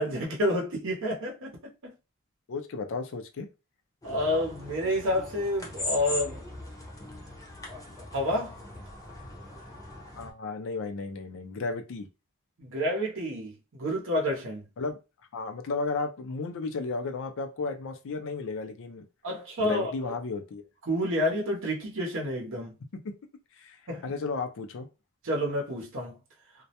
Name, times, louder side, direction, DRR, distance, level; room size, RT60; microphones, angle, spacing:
voice 1, 0.0-1.9 4.0-6.4 8.1-8.6 12.6-14.6 19.2-19.9 20.9-22.7 23.9-24.0 25.2-26.2, equal, 60° right, 0.7 m, -29 dB
voice 2, 2.5-3.5 10.2-12.1 14.8-15.0 15.3-19.1 19.6-20.6 23.0-23.1 23.6-23.8 24.0-24.9, left 4 dB, 65° left, 0.4 m, -34 dB
sound 1, 4.0-10.3, left 2 dB, 15° left, 0.6 m, -40 dB
2.2 x 2.0 x 2.8 m
head